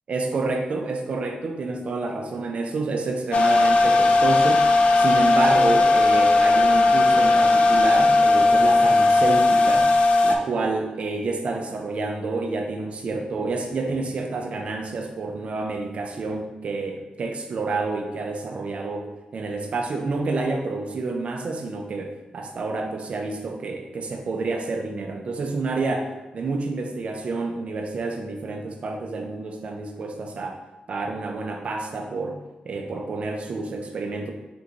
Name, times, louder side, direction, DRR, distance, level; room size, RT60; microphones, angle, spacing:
voice 1, 0.1-9.9 10.2-30.6 30.9-32.4 32.6-34.3, right 3 dB, 45° right, 3 dB, 0.4 m, -29 dB
sound 1, 3.3-10.4, left 2 dB, 50° left, 0.3 m, -17 dB
4.0 x 3.4 x 2.9 m, 1.1 s
wide cardioid pair, 180°, 3 cm